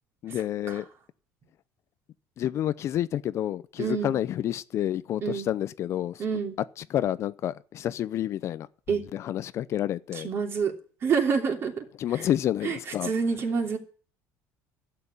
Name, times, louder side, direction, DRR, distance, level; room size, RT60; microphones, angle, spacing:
voice 1, 0.2-0.9 2.4-6.2 6.8-8.7 9.1-10.3 12.0-13.1, left 11 dB, 45° left, 0.6 m, -29 dB
voice 2, 3.8-4.2 5.2-5.5 6.2-6.6 8.9-9.0 10.1-10.7 11.0-11.8 12.6-13.8, right 6 dB, 40° right, 3.0 m, -27 dB
12.0 x 7.6 x 9.8 m
cardioid pair, 125°, 7 cm